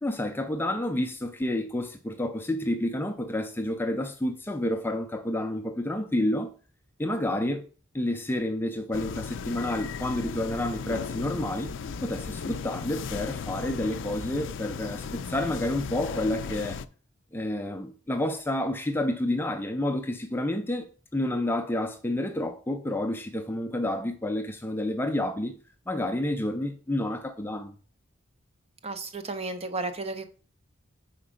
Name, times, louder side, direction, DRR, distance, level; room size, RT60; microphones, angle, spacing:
voice 1, 0.0-6.5 7.0-7.6 7.9-11.7 12.0-16.8 17.3-20.9 21.1-25.5 25.9-27.7, left 1 dB, 10° left, 0.4 m, -29 dB
sound 1, 8.9-16.9, left 6 dB, 70° left, 0.4 m, -36 dB
voice 2, 28.8-30.3, right 3 dB, 30° right, 0.7 m, -33 dB
5.1 x 4.6 x 5.0 m
head